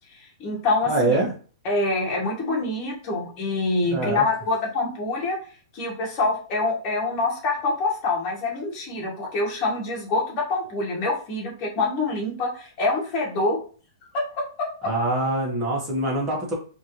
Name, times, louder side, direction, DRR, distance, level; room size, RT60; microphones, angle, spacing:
voice 1, 0.1-1.2 1.6-5.4 5.7-13.6 14.1-14.7, left 3 dB, 25° left, -2 dB, 1.6 m, -26 dB
voice 2, 0.8-1.3 3.9-4.3 14.8-16.5, right 2 dB, 20° right, -2 dB, 1.5 m, -24 dB
4.4 x 2.9 x 3.1 m, 0.39 s
hypercardioid pair, 165°, 3 cm